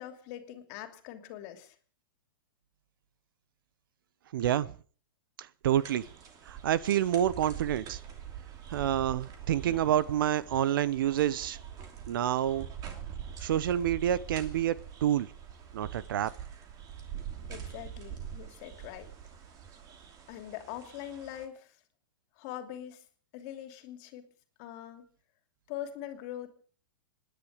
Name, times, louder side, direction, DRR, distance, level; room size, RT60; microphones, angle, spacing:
voice 1, 0.0-1.7 17.5-19.1 20.3-21.8 22.4-23.0 23.3-24.3 24.6-25.1 25.7-26.5, left 11 dB, 45° left, 2.8 m, -42 dB
voice 2, 4.3-4.7 5.6-6.1 6.5-8.0 8.7-11.6 12.1-12.7 13.4-14.7 15.0-15.3 15.7-16.3, right 11 dB, 70° right, 0.9 m, -28 dB
sound 1, 5.7-21.5, right 9 dB, 30° right, 2.9 m, -44 dB
26.0 x 10.5 x 5.1 m
hypercardioid pair, 130°, 12 cm